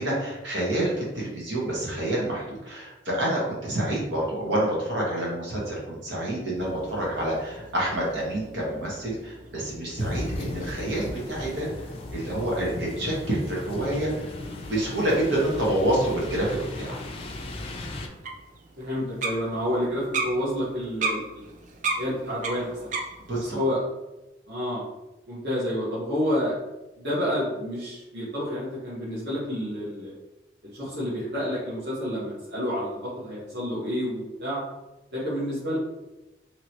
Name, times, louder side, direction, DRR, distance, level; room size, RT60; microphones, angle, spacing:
voice 1, 0.0-11.7 12.1-14.2 14.6-17.0 23.3-23.6, right 1 dB, 90° right, -4 dB, 1.2 m, -28 dB
sound 1, 6.6-23.5, right 3 dB, 45° right, 0.4 m, -38 dB
sound 2, 10.0-18.1, left 1 dB, 30° left, 0.3 m, -36 dB
voice 2, 18.8-21.4 22.0-22.9 23.3-23.8 24.5-24.9 25.3-26.5 27.0-30.1 30.7-34.6 35.1-35.8, equal, 60° right, -10 dB, 1.1 m, -29 dB
2.9 x 2.9 x 2.9 m, 1.0 s
head